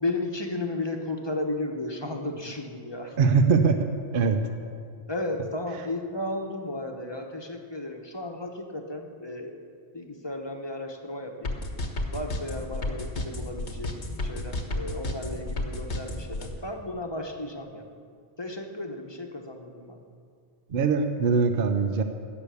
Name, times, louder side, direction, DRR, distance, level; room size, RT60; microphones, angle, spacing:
voice 1, 0.0-3.2 5.1-9.6 9.9-11.5 12.1-17.9 18.4-20.0, left 2 dB, 25° left, 3 dB, 1.1 m, -34 dB
voice 2, 3.2-4.4 20.7-22.0, right 5 dB, 55° right, 7 dB, 0.9 m, -22 dB
sound 1, 11.5-16.5, left 1 dB, 75° left, 1.7 m, -31 dB
17.0 x 6.8 x 8.4 m, 2.3 s
omnidirectional pair, 1.2 m